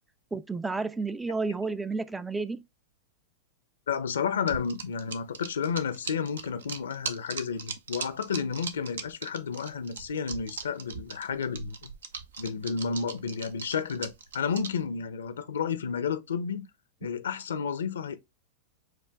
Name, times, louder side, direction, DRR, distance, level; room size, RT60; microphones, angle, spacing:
voice 1, 0.3-2.6, right 3 dB, 10° right, 0.3 m, -31 dB
voice 2, 3.9-11.9 12.4-16.7 17.0-18.2, left 6 dB, 80° left, 0.5 m, -31 dB
sound 1, 4.5-14.8, right 6 dB, 80° right, 0.5 m, -39 dB
4.7 x 2.2 x 3.3 m
hypercardioid pair, 100°, 0 cm